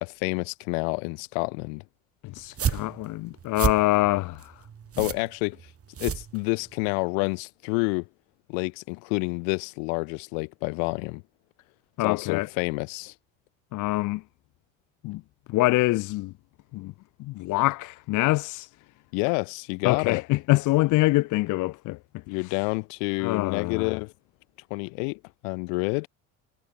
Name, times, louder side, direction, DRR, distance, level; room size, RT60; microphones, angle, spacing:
voice 1, 0.0-1.8 5.0-5.6 6.0-8.1 8.5-11.2 12.0-13.1 19.1-20.2 22.3-24.1 24.7-26.1, left 40 dB or more, 70° left, 1.6 m, -28 dB
voice 2, 2.2-4.6 12.0-12.5 13.7-14.2 15.0-15.2 15.5-16.3 16.7-16.9 17.2-18.7 19.8-22.0 23.2-23.9, left 19 dB, 50° left, 0.7 m, -25 dB
sound 1, 2.4-6.9, right 8 dB, 35° right, 3.1 m, -31 dB
hypercardioid pair, 75°, 39 cm